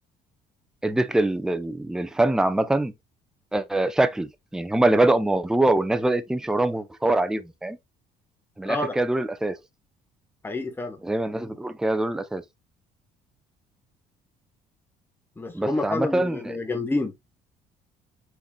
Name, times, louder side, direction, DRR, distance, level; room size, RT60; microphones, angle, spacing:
voice 1, 0.8-2.9 3.5-7.8 8.6-9.6 11.0-12.4 15.5-16.5, right 2 dB, 5° right, 0.5 m, -24 dB
voice 2, 10.4-11.0 15.4-17.1, left 2 dB, 15° left, 1.0 m, -28 dB
5.8 x 4.0 x 2.2 m
cardioid pair, 105°, 17 cm